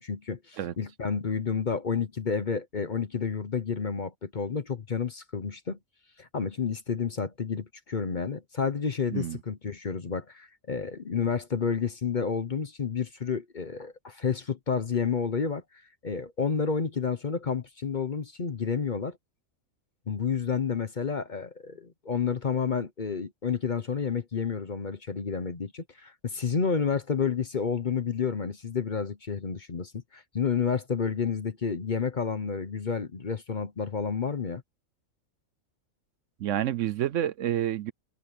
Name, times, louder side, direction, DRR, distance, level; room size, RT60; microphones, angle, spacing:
voice 1, 0.0-5.8 6.2-15.6 16.0-19.2 20.1-34.6, left 6 dB, 40° left, 0.9 m, -30 dB
voice 2, 36.4-37.9, right 11 dB, 70° right, 0.9 m, -28 dB
omnidirectional pair, 1.4 m